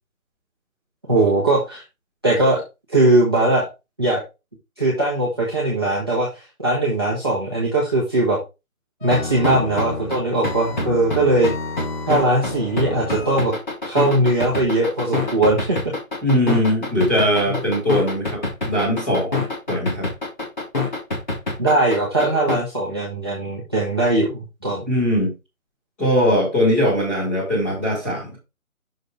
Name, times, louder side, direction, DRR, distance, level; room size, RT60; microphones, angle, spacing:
voice 1, 1.1-1.8 2.2-2.6 2.9-3.6 4.0-4.2 4.8-8.4 9.0-11.5 12.1-13.5 13.8-15.9 17.5-17.6 21.6-24.8, right 2 dB, 20° right, -7 dB, 1.1 m, -20 dB
sound 1, 9.0-22.6, left 3 dB, 30° left, 1.8 m, -26 dB
voice 2, 16.2-19.4 19.7-20.1 24.9-25.3 26.0-28.4, equal, 10° left, -7 dB, 2.4 m, -20 dB
6.4 x 4.8 x 4.5 m, 0.26 s
figure-of-eight pair, 175°, 42 cm